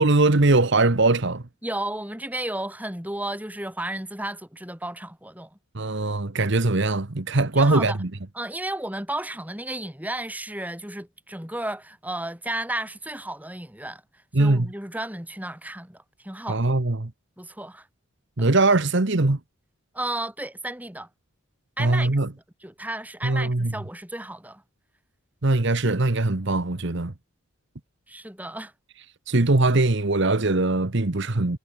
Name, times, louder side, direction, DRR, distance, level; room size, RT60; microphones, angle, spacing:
voice 1, 0.0-1.4 5.7-8.1 14.3-14.7 16.5-17.1 18.4-19.4 21.8-22.3 23.2-23.7 25.4-27.1 29.3-31.6, right 2 dB, 55° right, 1.2 m, -21 dB
voice 2, 1.6-5.5 7.5-8.0 8.3-14.0 14.4-16.6 17.4-17.9 18.4-18.5 19.9-21.1 21.8-22.1 22.6-24.6 28.1-28.7, right 1 dB, 5° right, 3.3 m, -33 dB
head